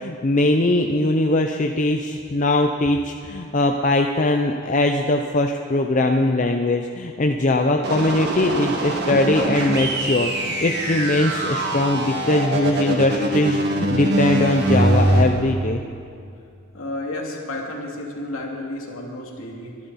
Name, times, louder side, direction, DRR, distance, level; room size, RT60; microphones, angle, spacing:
voice 1, 0.0-15.8, left 2 dB, 35° left, 4 dB, 0.6 m, -21 dB
sound 1, 7.8-15.2, right 1 dB, 50° right, 1.9 m, -23 dB
voice 2, 16.7-19.8, left 1 dB, 70° left, -1 dB, 2.7 m, -31 dB
23.5 x 12.0 x 4.2 m, 2.5 s
head